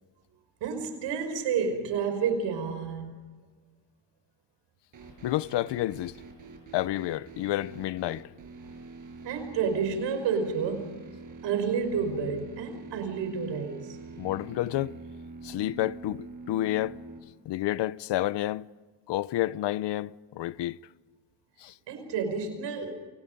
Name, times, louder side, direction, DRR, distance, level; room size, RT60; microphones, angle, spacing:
voice 1, 0.6-3.2 9.2-11.0 11.4-14.0 21.9-22.9, right 6 dB, 90° right, 5.6 m, -30 dB
sound 1, 4.9-17.2, right 3 dB, 45° right, 6.7 m, -45 dB
voice 2, 5.2-6.2 6.7-8.3 14.2-15.0 15.4-17.0 17.4-18.6 19.1-20.8 21.6-21.7, left 15 dB, 75° left, 0.8 m, -30 dB
29.0 x 28.5 x 5.4 m
cardioid pair, 140°, 42 cm